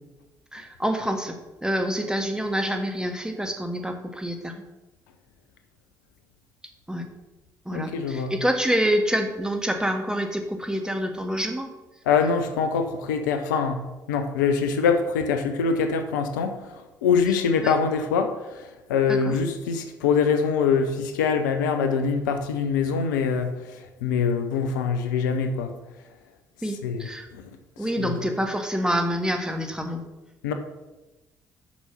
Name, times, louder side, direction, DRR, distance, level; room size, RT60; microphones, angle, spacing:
voice 1, 0.5-4.5 6.9-7.0 7.6-11.7 17.6-17.7 19.1-19.4 26.6-27.3 27.8-30.0, equal, 5° right, 5 dB, 1.7 m, -27 dB
voice 2, 7.7-8.3 12.1-13.8 14.1-16.6 17.0-18.6 18.9-23.5 24.0-25.7 26.8-27.1 27.3-27.4 28.0-28.1 30.4-30.5, left 6 dB, 80° left, 7 dB, 0.8 m, -24 dB
7.2 x 6.1 x 7.0 m, 1.1 s
figure-of-eight pair, 45°, 10 cm